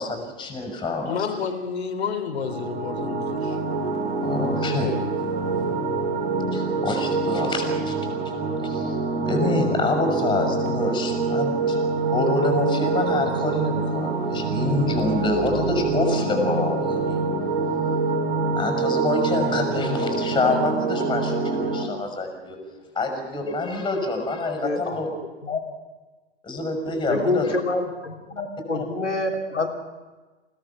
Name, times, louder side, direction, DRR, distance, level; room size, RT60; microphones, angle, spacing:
voice 1, 0.0-1.2 4.2-5.0 6.5-7.9 8.6-9.0 9.3-11.8 12.1-17.2 18.5-22.6 22.9-25.1 26.4-27.5 28.7-28.8, left 2 dB, 15° left, 5 dB, 6.0 m, -26 dB
voice 2, 1.1-3.6, left 6 dB, 60° left, 8 dB, 3.1 m, -30 dB
sound 1, 2.4-21.8, right 3 dB, 50° right, 3.8 m, -25 dB
voice 3, 24.6-25.0 25.4-25.6 27.1-29.7, left 3 dB, 80° left, 2 dB, 3.6 m, -26 dB
29.0 x 18.0 x 6.1 m, 1.3 s
figure-of-eight pair, 105°, 36 cm